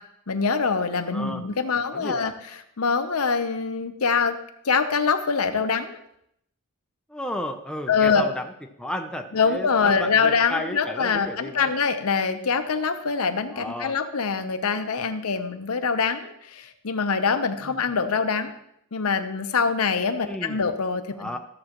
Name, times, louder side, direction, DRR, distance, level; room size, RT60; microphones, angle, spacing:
voice 1, 0.3-4.4 4.6-6.0 7.9-8.3 9.3-18.5 18.9-21.4, left 5 dB, 80° left, 8 dB, 0.8 m, -24 dB
voice 2, 1.1-1.4 1.9-2.3 7.1-8.4 8.8-11.7 13.5-13.9 17.6-17.7 20.2-20.6 21.2-21.4, left 1 dB, 5° left, 3 dB, 0.5 m, -33 dB
13.5 x 7.6 x 3.0 m, 0.76 s
head